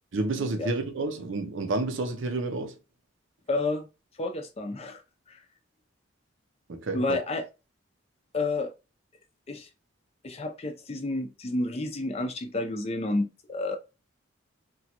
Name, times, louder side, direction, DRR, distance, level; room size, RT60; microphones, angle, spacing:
voice 1, 0.1-2.7 6.7-7.2, right 2 dB, 65° right, 0.6 m, -30 dB
voice 2, 3.5-3.9 4.2-5.0 5.3-5.4 6.9-7.4 8.3-8.7 9.5-9.7 10.2-13.8, left 2 dB, 30° left, 0.4 m, -30 dB
3.0 x 2.2 x 2.8 m
head